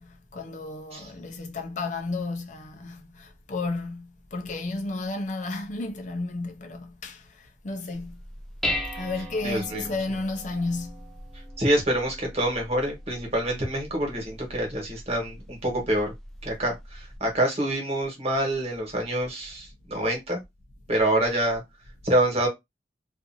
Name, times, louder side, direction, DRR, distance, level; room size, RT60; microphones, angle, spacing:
voice 1, 0.0-8.2 8.9-11.2, left 3 dB, 45° left, 0.6 m, -33 dB
Dishes pots and pans, 7.9-17.2, equal, ahead, 0.4 m, -38 dB
voice 2, 9.4-9.9 11.6-16.1 16.4-20.4 20.9-21.6 22.0-22.5, right 1 dB, 35° right, 1.2 m, -26 dB
2.5 x 2.5 x 2.6 m
head